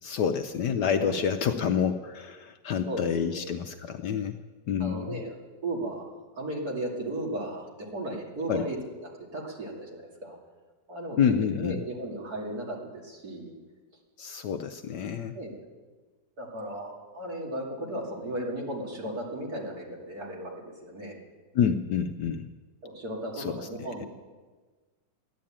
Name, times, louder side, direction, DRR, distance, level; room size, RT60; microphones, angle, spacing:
voice 1, 0.0-4.4 4.7-5.2 8.5-8.7 11.2-11.8 14.2-15.4 21.5-22.5 23.3-23.7, left 7 dB, 70° left, 7 dB, 1.1 m, -28 dB
voice 2, 1.0-1.7 2.9-3.5 4.8-5.3 5.6-6.1 6.3-8.8 9.0-10.4 10.9-11.2 11.5-13.6 15.3-15.6 16.4-21.2 22.8-24.1, right 1 dB, 50° right, -2 dB, 3.2 m, -35 dB
13.0 x 11.0 x 8.8 m, 1.4 s
omnidirectional pair, 2.1 m